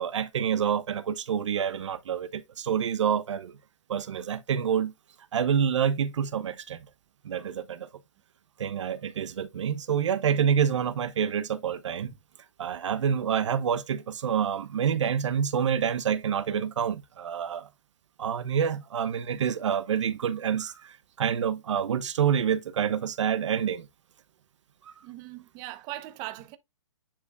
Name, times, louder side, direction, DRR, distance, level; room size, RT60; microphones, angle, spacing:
voice 1, 0.0-3.5 3.9-4.9 5.3-6.8 7.2-7.9 8.6-12.1 12.6-17.7 18.2-23.9, right 8 dB, 70° right, 0.9 m, -27 dB
voice 2, 25.0-26.6, right 16 dB, 25° right, 1.0 m, -39 dB
10.0 x 4.3 x 2.5 m
hypercardioid pair, 150°, 16 cm